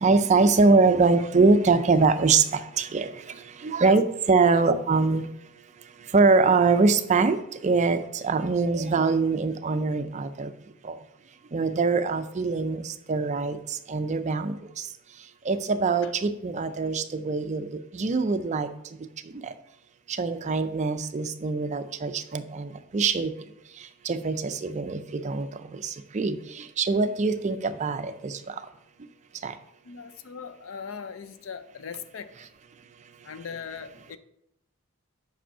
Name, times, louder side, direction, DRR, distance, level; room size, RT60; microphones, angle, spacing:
voice 1, 0.0-2.4 2.8-3.1 3.6-4.0 4.3-5.3 6.1-7.4 7.6-8.0 8.2-10.5 11.5-12.8 13.1-13.6 13.9-14.5 15.5-17.7 18.0-18.7 20.2-22.7 22.9-23.3 24.1-25.5 26.1-26.4 26.8-28.3 29.4-29.5, right 4 dB, 35° right, 11 dB, 0.4 m, -23 dB
voice 2, 29.9-32.5 33.2-34.2, left 6 dB, 65° left, 11 dB, 0.5 m, -39 dB
5.5 x 5.1 x 5.5 m, 0.78 s
head